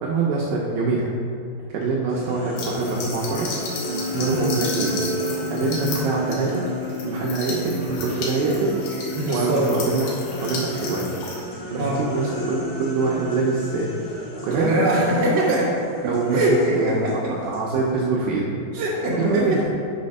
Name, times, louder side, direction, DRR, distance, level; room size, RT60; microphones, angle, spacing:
voice 1, 0.0-1.1 1.7-3.5 4.1-5.0 5.5-6.7 7.0-8.8 9.3-10.1 10.4-11.1 11.7-14.0 14.4-14.9 16.0-18.5 19.2-19.7, right 3 dB, 90° right, -4 dB, 2.0 m, -24 dB
sound 1, 2.1-9.2 9.5-18.1, left 1 dB, 85° left, 3.8 m, -34 dB
sound 2, 2.6-11.4, left 3 dB, 65° left, 2.3 m, -34 dB
Wind instrument woodwind instrument, 3.9-9.5, equal, 70° right, 2.7 m, -32 dB
voice 2, 9.1-9.7 11.7-12.0 14.5-15.7 16.3-17.3 18.7-19.7, right 1 dB, 45° right, -7 dB, 1.7 m, -22 dB
8.6 x 4.2 x 5.3 m, 2.5 s
omnidirectional pair, 5.0 m